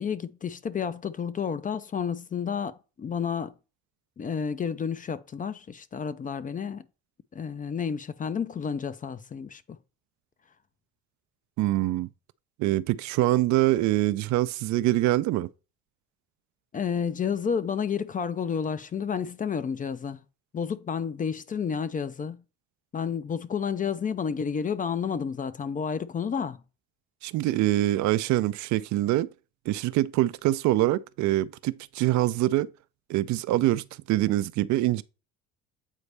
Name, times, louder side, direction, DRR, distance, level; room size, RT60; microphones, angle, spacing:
voice 1, 0.0-3.5 4.2-6.8 7.3-9.6 16.7-20.2 20.5-22.4 22.9-26.6, left 7 dB, 25° left, 0.4 m, -30 dB
voice 2, 11.6-12.1 12.6-15.5 27.2-29.3 29.7-32.7 33.1-35.0, right 16 dB, 60° right, 0.4 m, -24 dB
8.3 x 4.0 x 3.3 m
cardioid pair, 100°, 32 cm